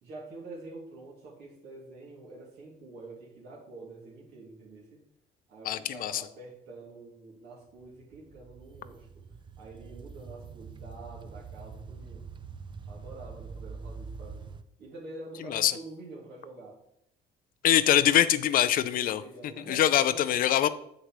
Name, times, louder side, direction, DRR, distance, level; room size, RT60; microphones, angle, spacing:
voice 1, 0.0-5.0 5.5-9.2 9.6-12.3 12.9-14.5 14.8-16.8 19.0-20.3, right 2 dB, 70° right, -3 dB, 2.6 m, -47 dB
voice 2, 5.6-6.2 15.5-15.7 17.6-19.2 19.7-20.7, left 11 dB, 60° left, 14 dB, 0.4 m, -23 dB
sound 1, 7.7-14.6, right 5 dB, 30° right, 0.4 m, -44 dB
8.0 x 6.6 x 3.1 m, 0.77 s
cardioid pair, 110°, 17 cm